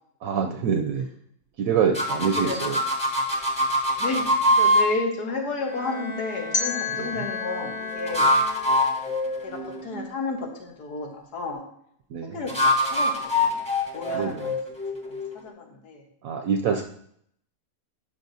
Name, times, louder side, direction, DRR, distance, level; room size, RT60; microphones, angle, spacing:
voice 1, 0.2-1.1 1.6-2.8 7.0-7.2 12.1-12.4 14.1-14.5 16.2-16.8, right 6 dB, 70° right, 5 dB, 0.9 m, -25 dB
sound 1, 1.9-4.9 7.9-10.0 12.5-15.4, left 1 dB, 5° left, 0.9 m, -23 dB
voice 2, 2.3-2.6 4.0-8.3 9.4-11.6 12.2-13.6 13.9-14.6 15.0-16.1, left 3 dB, 85° left, 1 dB, 1.8 m, -32 dB
Bowed string instrument, 5.6-9.1, left 2 dB, 65° left, 1.3 m, -37 dB
sound 2, 6.5-9.5, left 5 dB, 50° left, 0.6 m, -32 dB
11.5 x 5.0 x 2.7 m, 0.69 s
omnidirectional pair, 1.6 m